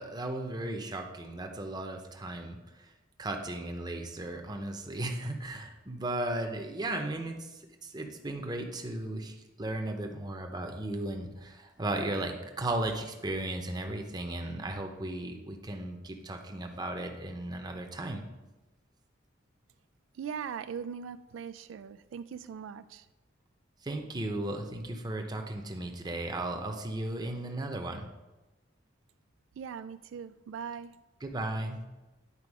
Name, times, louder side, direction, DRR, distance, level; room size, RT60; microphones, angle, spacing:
voice 1, 0.0-2.9 3.2-18.2 23.8-28.1 31.2-31.8, right 1 dB, 20° right, 3 dB, 0.8 m, -36 dB
voice 2, 20.1-23.1 29.6-31.0, right 7 dB, 80° right, 12 dB, 0.3 m, -40 dB
9.8 x 4.7 x 4.8 m, 1.1 s
head